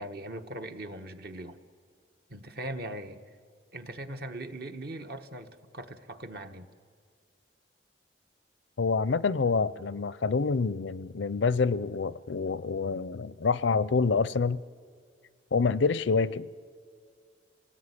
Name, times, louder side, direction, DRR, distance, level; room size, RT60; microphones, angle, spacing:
voice 1, 0.0-1.6 2.3-3.2 3.7-6.7, right 1 dB, 55° right, 1.3 m, -40 dB
voice 2, 8.8-14.6 15.5-16.5, left 4 dB, 85° left, 0.6 m, -27 dB
27.0 x 18.0 x 9.9 m
head